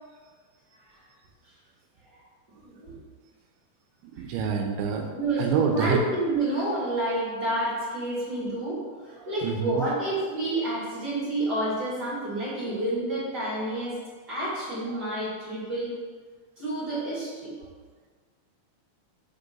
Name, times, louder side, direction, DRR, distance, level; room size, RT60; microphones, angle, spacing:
voice 1, 2.5-3.0 4.1-4.3 5.1-13.9 14.3-15.9 16.6-17.5, right 1 dB, 35° right, -9 dB, 1.6 m, -29 dB
voice 2, 4.2-5.1 5.4-6.0 9.4-9.8 14.9-15.1, right 6 dB, 80° right, 3 dB, 2.7 m, -26 dB
6.2 x 5.0 x 5.3 m, 1.5 s
omnidirectional pair, 5.5 m